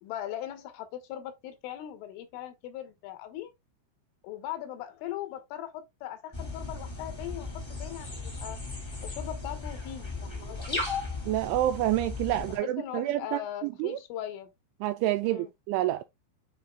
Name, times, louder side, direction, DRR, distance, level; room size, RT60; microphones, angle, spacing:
voice 1, 0.0-3.5 4.2-7.5 7.8-8.6 9.0-10.8 12.6-14.5 15.2-15.5, left 12 dB, 80° left, 3.6 m, -39 dB
sound 1, 6.3-12.6, left 3 dB, 30° left, 0.4 m, -36 dB
voice 2, 11.3-13.4 13.8-14.0 14.8-16.0, right 14 dB, 85° right, 2.7 m, -28 dB
10.5 x 5.2 x 2.2 m
omnidirectional pair, 5.8 m